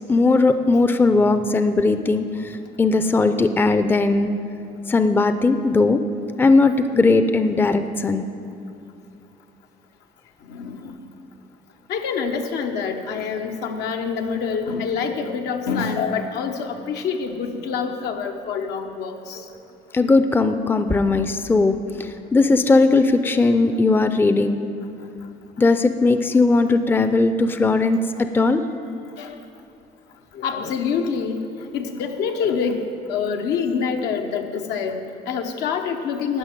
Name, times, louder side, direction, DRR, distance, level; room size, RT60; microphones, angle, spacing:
voice 1, 0.1-4.3 4.9-6.0 6.4-8.2 19.9-24.6 25.6-28.0 28.3-28.6, left 3 dB, 10° left, 9 dB, 0.5 m, -18 dB
voice 2, 10.5-11.0 11.9-19.4 29.2-29.3 30.3-31.4 31.7-36.4, left 6 dB, 80° left, 4 dB, 1.0 m, -26 dB
11.5 x 5.8 x 9.1 m, 2.5 s
cardioid pair, 110°, 17 cm